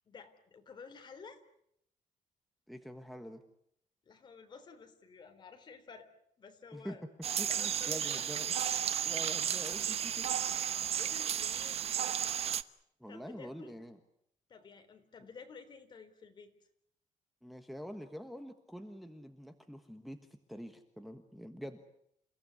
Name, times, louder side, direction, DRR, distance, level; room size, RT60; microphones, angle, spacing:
voice 1, 0.0-1.4 4.1-6.1 6.4-7.0 7.5-8.2 10.9-11.9 13.1-13.7 14.5-16.5, left 5 dB, 35° left, 6 dB, 3.6 m, -52 dB
voice 2, 2.7-3.4 6.7-7.0 7.4-8.5 9.0-10.3 13.0-14.0 17.4-20.2 20.5-21.8, equal, ahead, 6 dB, 1.4 m, -46 dB
sound 1, 7.2-12.6, right 9 dB, 50° right, 0.9 m, -33 dB
29.5 x 16.5 x 9.8 m, 0.74 s
cardioid pair, 170°, 13 cm